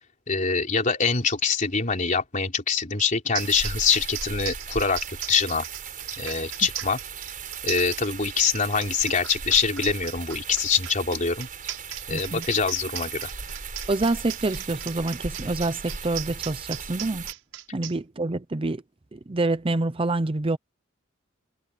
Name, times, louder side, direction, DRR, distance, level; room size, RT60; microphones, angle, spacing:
voice 1, 0.3-5.6 6.2-7.0 7.6-11.5 12.1-13.3, left 5 dB, 40° left, 3.4 m, -24 dB
sound 1, 3.0-3.1 3.3-17.9, right 12 dB, 90° right, 6.5 m, -37 dB
sound 2, 3.4-17.3, right 5 dB, 45° right, 6.2 m, -37 dB
voice 2, 12.1-12.4 13.9-17.2 17.7-18.8 19.1-20.6, right 2 dB, 25° right, 0.6 m, -27 dB
head